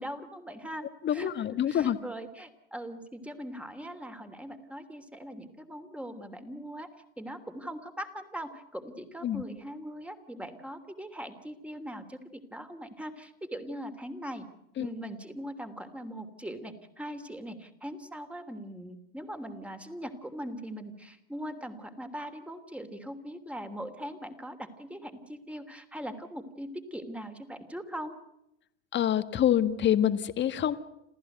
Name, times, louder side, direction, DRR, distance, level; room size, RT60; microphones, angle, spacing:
voice 1, 0.0-6.9 7.2-14.4 14.8-28.1, equal, 5° right, 8 dB, 3.0 m, -41 dB
voice 2, 1.0-2.0 9.2-9.4 14.8-14.9 28.9-30.8, left 10 dB, 35° left, 11 dB, 1.7 m, -26 dB
28.0 x 15.0 x 8.0 m, 0.83 s
hypercardioid pair, 90°, 31 cm